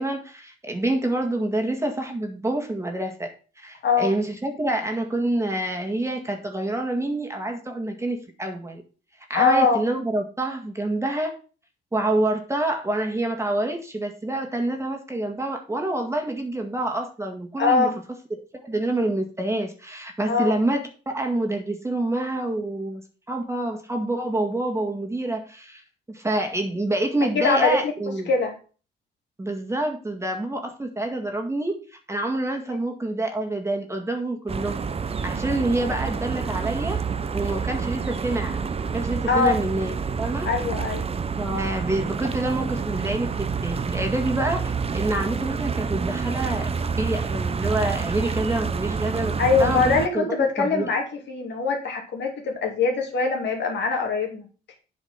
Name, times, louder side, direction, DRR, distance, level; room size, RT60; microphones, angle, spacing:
voice 1, 0.0-3.3 3.6-8.8 9.3-11.3 11.9-17.9 18.6-23.0 23.3-25.8 26.1-28.3 29.4-34.9 35.2-37.0 37.3-38.6 38.9-40.5 41.4-46.7 47.0-49.3 49.6-49.8 50.1-50.9, right 1 dB, 15° right, 3 dB, 1.9 m, -27 dB
voice 2, 9.3-9.9 17.6-17.9 20.3-20.5 27.3-27.8 28.1-28.5 39.3-39.6 40.5-41.1 49.4-54.4, left 4 dB, 65° left, 2 dB, 2.6 m, -22 dB
sound 1, 34.5-50.1, right 5 dB, 30° right, 0.7 m, -28 dB
8.4 x 4.9 x 5.9 m, 0.36 s
cardioid pair, 90°, 20 cm